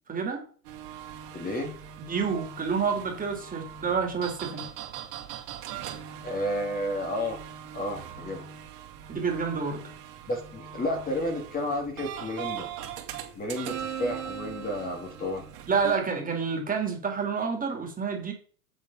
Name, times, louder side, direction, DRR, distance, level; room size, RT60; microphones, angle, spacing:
voice 1, 0.1-0.4 2.1-4.7 9.1-9.9 15.7-18.3, right 5 dB, 20° right, 2 dB, 3.1 m, -28 dB
sound 1, 0.6-16.0, right 9 dB, 55° right, 2.8 m, -40 dB
voice 2, 1.3-1.7 6.2-7.4 7.7-8.4 10.3-12.7 13.3-15.4, left 1 dB, 20° left, 2 dB, 2.6 m, -31 dB
7.6 x 7.6 x 5.7 m, 0.43 s
hypercardioid pair, 110°, 46 cm